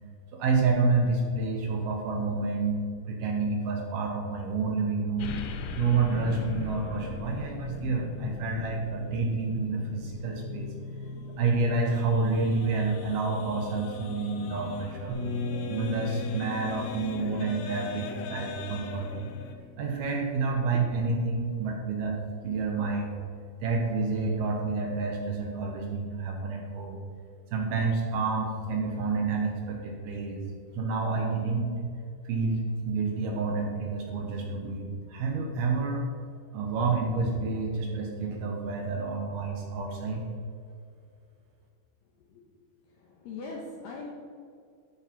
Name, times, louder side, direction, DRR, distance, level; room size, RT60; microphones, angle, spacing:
voice 1, 0.3-2.8 3.1-5.3 5.7-10.7 11.4-15.2 15.7-19.3 19.8-22.2 22.4-23.2 23.6-27.0 27.5-30.4 30.7-31.9 32.2-36.0 36.5-40.2, right 4 dB, 70° right, 1 dB, 2.7 m, -29 dB
sound 1, 5.2-19.5, left 5 dB, 90° left, 3.2 m, -40 dB
sound 2, 15.1-20.9, left 2 dB, 85° right, 3.7 m, -38 dB
voice 2, 42.9-44.1, left 3 dB, 75° left, -1 dB, 2.2 m, -41 dB
14.0 x 6.5 x 4.5 m, 2.3 s
omnidirectional pair, 5.3 m